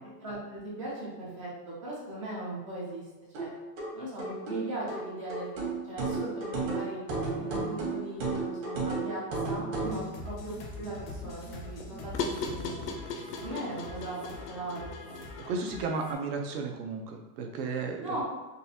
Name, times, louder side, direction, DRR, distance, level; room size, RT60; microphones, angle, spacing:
voice 1, 0.2-1.5 1.8-3.0 3.3-3.5 3.9-5.5 5.8-7.0 7.4-12.8 13.4-15.3 18.0-18.2, right 1 dB, 25° right, -6 dB, 0.3 m, -38 dB
sound 1, 3.3-10.0, right 3 dB, 55° right, 1.4 m, -33 dB
sound 2, 9.8-16.1, left 2 dB, 35° left, 0.5 m, -44 dB
sound 3, 10.8-15.7, left 4 dB, 75° left, 0.7 m, -39 dB
voice 2, 15.5-18.2, right 4 dB, 75° right, 3 dB, 0.7 m, -34 dB
3.9 x 2.4 x 2.8 m, 1.1 s
supercardioid pair, 170°, 48 cm